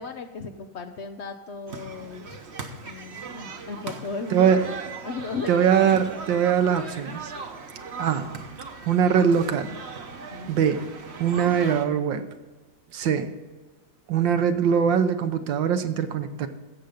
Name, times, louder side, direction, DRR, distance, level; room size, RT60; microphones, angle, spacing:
voice 1, 0.0-2.4 2.8-5.8 10.3-10.8, left 4 dB, 80° left, 5 dB, 0.6 m, -36 dB
sound 1, 1.7-11.9, right 4 dB, 40° right, 1.0 m, -39 dB
voice 2, 4.3-4.6 5.5-7.3 8.0-8.4 8.9-9.8 10.5-10.9 11.2-12.3 12.9-13.3 14.1-16.5, right 7 dB, 70° right, 9 dB, 1.5 m, -22 dB
15.5 x 6.9 x 5.1 m, 1.3 s
omnidirectional pair, 2.1 m